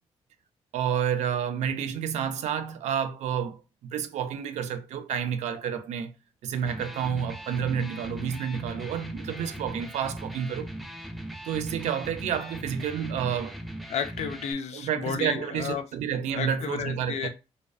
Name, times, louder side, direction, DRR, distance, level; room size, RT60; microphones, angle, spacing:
voice 1, 0.7-6.1 6.4-10.7 11.4-13.5 14.7-17.3, right 8 dB, 75° right, 0.4 m, -30 dB
Electric guitar, 6.5-14.5, right 1 dB, ahead, 0.4 m, -39 dB
voice 2, 13.9-15.8 16.3-17.3, left 7 dB, 65° left, 0.4 m, -32 dB
2.5 x 2.1 x 2.3 m
cardioid pair, 75°, 12 cm